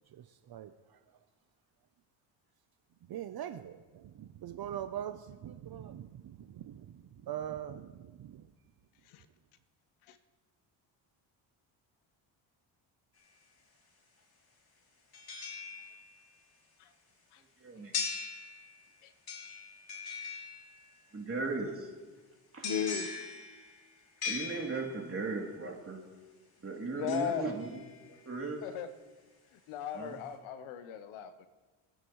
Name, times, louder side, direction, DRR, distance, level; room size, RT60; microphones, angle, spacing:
voice 1, 0.1-1.0 3.1-8.5, right 10 dB, 50° right, 9 dB, 0.7 m, -42 dB
sound 1, 13.2-13.3 15.1-16.3 17.9-18.9 19.3-21.0 22.6-25.2 27.1-28.2 28.7-28.8, left 5 dB, 45° left, 3.1 m, -41 dB
voice 2, 17.6-17.9 21.1-21.9 22.5-22.7 24.3-26.0 26.6-27.7 28.3-28.6 29.9-30.2, right 3 dB, 30° right, -1 dB, 3.1 m, -37 dB
voice 3, 22.6-23.2 27.0-27.6 28.6-28.9 29.5-31.5, left 8 dB, 85° left, 11 dB, 1.0 m, -37 dB
22.0 x 9.1 x 3.2 m, 1.3 s
supercardioid pair, 75°, 48 cm